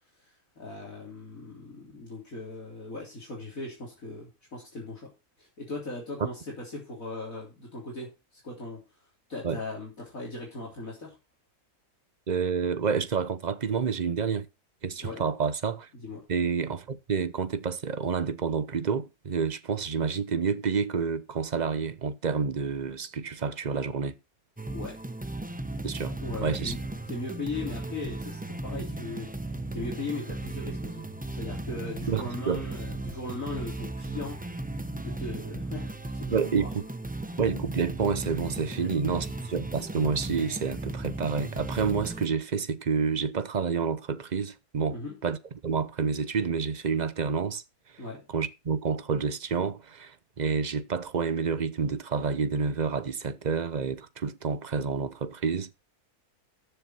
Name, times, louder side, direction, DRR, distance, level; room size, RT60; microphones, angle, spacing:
voice 1, 0.6-5.1 5.4-8.8 9.3-11.2 15.0-15.2 15.9-16.3 24.7-25.0 26.2-26.8 27.1-34.4 35.0-36.7 38.7-39.2 44.9-45.2 48.0-48.2, left 2 dB, 60° left, 3.9 m, -38 dB
voice 2, 12.3-14.5 14.8-15.9 16.3-24.1 25.8-26.1 26.4-26.7 32.1-32.7 36.3-36.8 37.4-45.4 45.6-47.6 48.3-55.8, right 5 dB, 40° right, 0.7 m, -29 dB
sound 1, 24.6-42.3, right 2 dB, 10° right, 0.5 m, -36 dB
14.0 x 6.9 x 4.4 m
omnidirectional pair, 1.6 m